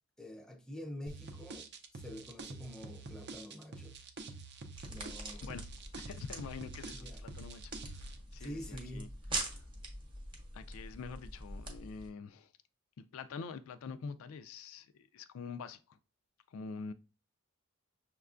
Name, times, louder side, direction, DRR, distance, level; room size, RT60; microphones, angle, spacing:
voice 1, 0.2-4.0 4.9-5.6 6.9-7.3 8.4-9.1, left 1 dB, 5° left, 0.5 m, -47 dB
sound 1, 1.1-8.2, right 3 dB, 50° right, 0.5 m, -47 dB
sound 2, 4.8-12.1, right 2 dB, 25° right, 0.9 m, -44 dB
voice 2, 6.0-9.1 9.5-9.6 10.5-12.5 13.0-16.0 16.5-16.9, left 5 dB, 70° left, 0.3 m, -46 dB
6.2 x 2.2 x 2.4 m
head